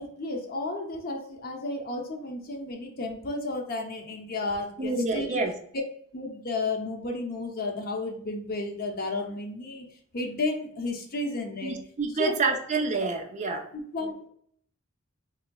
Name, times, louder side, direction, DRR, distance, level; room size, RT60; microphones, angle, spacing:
voice 1, 0.0-5.4 6.1-9.9 10.1-11.8 12.1-12.5 13.7-14.3, left 2 dB, 45° left, 3 dB, 0.6 m, -32 dB
voice 2, 4.8-5.5 11.6-13.6, right 3 dB, 35° right, 3 dB, 0.4 m, -28 dB
3.6 x 3.1 x 2.2 m, 0.64 s
head